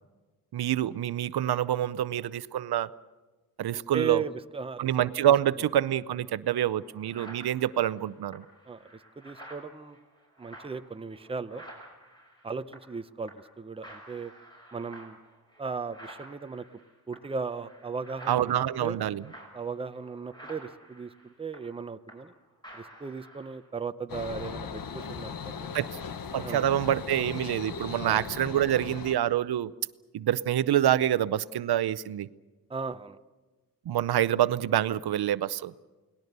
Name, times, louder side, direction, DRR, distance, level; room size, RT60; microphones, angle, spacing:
voice 1, 0.5-2.9 3.6-4.2 4.8-8.4 18.3-19.2 25.7-25.9 26.3-29.7 30.1-32.3 33.9-35.7, right 11 dB, 90° right, 0.7 m, -26 dB
voice 2, 3.7-4.8 5.2-5.3 8.7-10.0 10.4-11.6 12.4-14.3 14.7-15.2 15.6-16.7 17.1-19.0 19.5-21.1 21.4-22.3 22.7-25.7 26.4-26.7 28.0-28.3 32.7-33.2, right 5 dB, 15° right, 0.6 m, -36 dB
sound 1, 6.2-6.3 6.7-13.0 13.3-13.6 13.8-22.4 22.6-23.7, right 1 dB, 10° left, 6.1 m, -51 dB
sound 2, 24.1-29.2, left 6 dB, 65° left, 1.3 m, -38 dB
29.5 x 19.0 x 6.7 m
wide cardioid pair, 165°, 37 cm